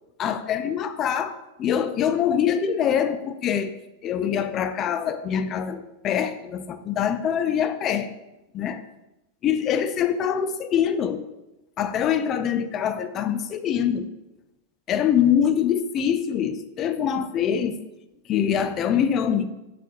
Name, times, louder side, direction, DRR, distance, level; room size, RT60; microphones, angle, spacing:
voice 1, 0.2-3.8 4.0-8.1 8.5-8.8 9.4-11.3 11.8-14.1 14.9-17.8 18.3-19.4, left 8 dB, 30° left, 10 dB, 0.4 m, -24 dB
7.9 x 4.1 x 2.9 m, 0.95 s
figure-of-eight pair, 90°, 0 cm